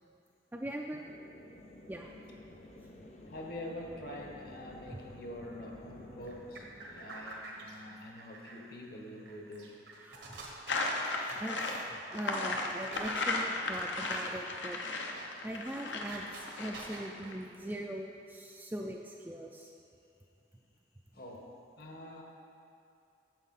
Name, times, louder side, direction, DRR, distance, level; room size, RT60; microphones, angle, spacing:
voice 1, 0.5-1.1 1.9-2.1 10.0-10.3 11.0-14.8 15.4-19.7, right 1 dB, 10° right, 0 dB, 0.3 m, -41 dB
sound 1, 1.0-8.6, left 1 dB, 40° left, 0.6 m, -53 dB
voice 2, 1.5-1.9 3.3-9.8 18.6-18.7 21.1-22.2, left 1 dB, 55° left, 0 dB, 1.1 m, -46 dB
sound 2, 6.2-17.7, right 2 dB, 80° right, 1.3 m, -49 dB
sound 3, 10.7-17.3, left 2 dB, 80° left, 0.8 m, -35 dB
9.1 x 7.1 x 4.1 m, 2.6 s
head